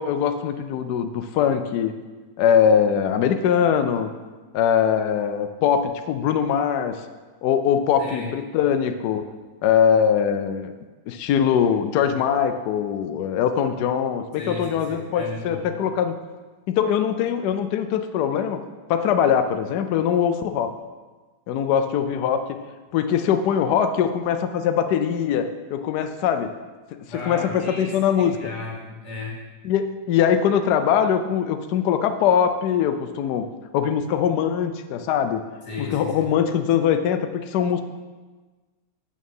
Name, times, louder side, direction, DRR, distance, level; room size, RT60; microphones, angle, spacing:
voice 1, 0.0-1.9 2.4-4.1 4.5-7.0 7.4-9.2 9.6-10.7 11.1-16.1 16.7-18.6 18.9-20.7 21.5-22.6 22.9-26.5 27.3-28.3 29.6-33.4 33.7-35.4 35.8-37.8, left 8 dB, 80° left, 8 dB, 0.9 m, -22 dB
voice 2, 8.0-8.3 14.4-15.8 27.1-29.4 35.6-36.3, left 3 dB, 50° left, -3 dB, 2.9 m, -35 dB
8.1 x 6.4 x 5.4 m, 1.3 s
omnidirectional pair, 2.3 m